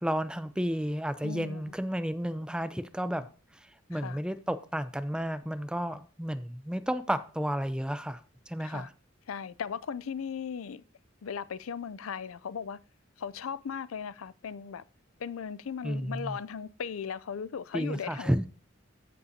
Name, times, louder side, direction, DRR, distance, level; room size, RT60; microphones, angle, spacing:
voice 1, 0.0-3.3 3.9-8.2 8.5-8.9 15.8-16.3 17.7-18.5, equal, 5° right, 0.5 m, -32 dB
voice 2, 1.2-1.7 3.9-4.2 8.6-8.9 9.3-10.8 11.2-12.8 13.2-14.8 15.2-18.5, left 6 dB, 85° left, 0.5 m, -37 dB
14.5 x 5.4 x 2.8 m
head